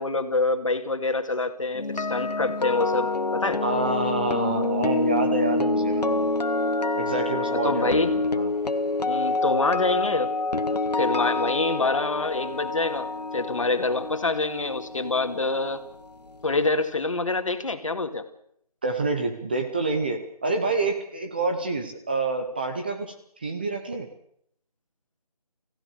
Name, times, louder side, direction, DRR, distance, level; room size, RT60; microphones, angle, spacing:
voice 1, 0.0-3.6 7.6-8.1 9.0-10.3 11.0-15.8 16.4-18.2, left 3 dB, 50° left, 7 dB, 2.2 m, -26 dB
sound 1, 1.7-15.8 16.1-16.4, left 2 dB, 75° left, 1.3 m, -27 dB
voice 2, 3.6-6.3 7.0-8.5 18.8-23.1 23.4-24.1, right 3 dB, 15° right, 5 dB, 0.8 m, -27 dB
28.0 x 15.5 x 6.6 m, 0.72 s
figure-of-eight pair, 160°, 21 cm